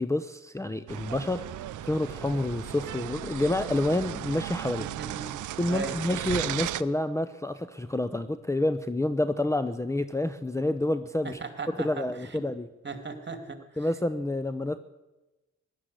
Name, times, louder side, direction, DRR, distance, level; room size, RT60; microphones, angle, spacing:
voice 1, 0.0-1.5 1.8-4.9 5.6-11.4 11.7-12.7 13.8-14.8, left 1 dB, 10° left, 11 dB, 0.7 m, -28 dB
Accelerating revving vroom, 0.8-6.7, left 2 dB, 45° left, 3.3 m, -53 dB
sound 1, 0.9-6.8, right 14 dB, 80° right, 0.5 m, -36 dB
voice 2, 4.8-5.4 5.7-6.0 11.4-11.9 12.8-13.6, right 4 dB, 35° right, 7 dB, 2.4 m, -37 dB
15.5 x 11.5 x 8.0 m, 1.1 s
cardioid pair, 60°, 30 cm